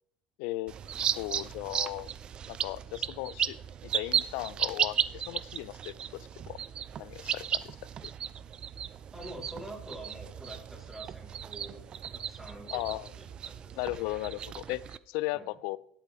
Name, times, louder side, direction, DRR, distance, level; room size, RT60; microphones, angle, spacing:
voice 1, 0.4-0.7 1.2-2.1 2.5-3.6 3.8-6.6 7.0-7.8 8.0-8.1 12.7-13.1 13.8-15.8, left 19 dB, 80° left, 21 dB, 0.4 m, -36 dB
sound 1, 0.7-15.0, right 8 dB, 40° right, 0.4 m, -35 dB
voice 2, 9.1-11.9 12.1-12.8 13.2-13.8 15.3-15.5, right 1 dB, 15° right, -3 dB, 5.5 m, -46 dB
17.5 x 8.2 x 3.5 m, 0.70 s
supercardioid pair, 105°, 2 cm